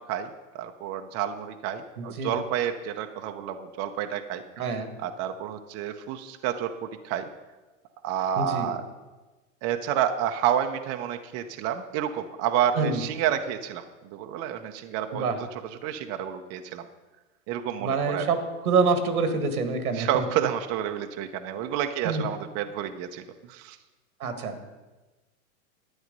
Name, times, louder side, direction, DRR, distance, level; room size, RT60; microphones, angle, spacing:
voice 1, 0.5-7.3 8.0-8.8 9.6-13.8 14.1-15.3 15.6-16.9 17.5-18.3 19.9-23.8, right 10 dB, 35° right, 6 dB, 0.7 m, -29 dB
voice 2, 2.0-2.3 4.6-4.9 8.4-8.7 12.8-13.0 15.1-15.4 17.8-18.4 18.6-20.2 22.0-22.2 24.2-24.5, right 4 dB, 85° right, 8 dB, 1.9 m, -26 dB
11.5 x 9.2 x 5.3 m, 1.2 s
hypercardioid pair, 125°, 43 cm